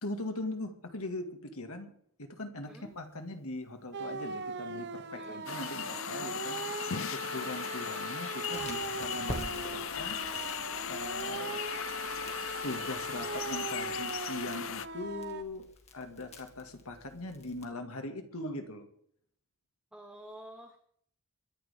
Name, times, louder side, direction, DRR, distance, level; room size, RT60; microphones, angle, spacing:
voice 1, 0.0-1.9 2.2-10.2 10.9-11.6 12.6-15.7 15.9-18.9, left 2 dB, 75° left, 5 dB, 2.2 m, -41 dB
sound 1, 3.9-15.4, right 3 dB, 50° right, 1.0 m, -39 dB
sound 2, 5.5-14.9, left 9 dB, 60° left, 0.6 m, -38 dB
Crackle, 8.5-17.6, left 1 dB, 30° left, 2.2 m, -47 dB
voice 2, 19.9-20.8, right 1 dB, 5° right, 3 dB, 1.2 m, -49 dB
23.5 x 11.0 x 3.7 m, 0.64 s
head